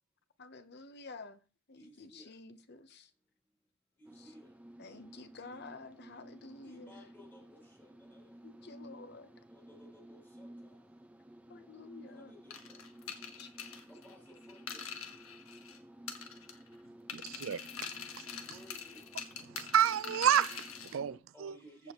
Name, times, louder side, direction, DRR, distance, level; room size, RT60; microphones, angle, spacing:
voice 1, 0.4-1.4 1.7-3.1 4.2-4.3 4.8-6.9 8.4-9.3 11.5-12.3 13.1-13.7, left 3 dB, 50° left, 0.9 m, -51 dB
voice 2, 1.8-2.4 4.0-4.6 6.6-8.4 9.5-10.8 12.1-12.8 13.9-14.9 16.9-17.0 18.4-19.1 21.3-21.9, equal, 10° left, 4.3 m, -58 dB
sound 1, 4.0-21.2, right 1 dB, 5° right, 0.6 m, -54 dB
sound 2, 12.5-15.8 16.1-16.7 17.1-21.0, left 7 dB, 85° left, 1.5 m, -44 dB
voice 3, 17.1-17.9 19.6-21.5, right 9 dB, 70° right, 0.4 m, -30 dB
15.0 x 7.1 x 3.0 m
head